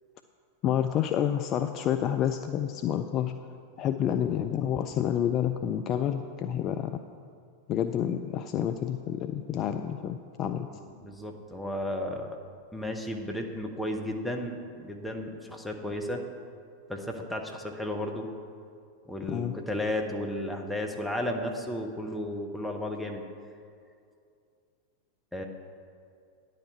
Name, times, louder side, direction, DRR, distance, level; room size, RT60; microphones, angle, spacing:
voice 1, 0.6-3.3 3.8-6.9 7.7-10.7 19.3-19.5, left 10 dB, 35° left, 8 dB, 0.3 m, -29 dB
voice 2, 10.7-12.4 12.7-16.2 16.9-18.3 19.1-23.2 25.3-25.4, left 1 dB, 5° left, 1 dB, 1.0 m, -33 dB
10.0 x 4.8 x 7.4 m, 2.4 s
figure-of-eight pair, 90°, 0 cm